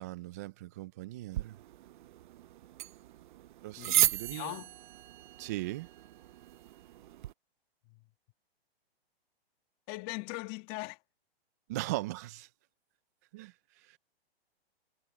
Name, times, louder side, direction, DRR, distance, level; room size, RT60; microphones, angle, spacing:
voice 1, 0.0-1.6 3.6-4.6 5.4-5.9 11.7-12.5 13.3-14.0, right 17 dB, 20° right, 0.3 m, -39 dB
sound 1, 1.3-7.3, right 14 dB, 50° right, 0.7 m, -35 dB
voice 2, 3.8-4.7 7.8-8.0 9.9-11.0, left 24 dB, 30° left, 1.5 m, -40 dB
hypercardioid pair, 145°, 31 cm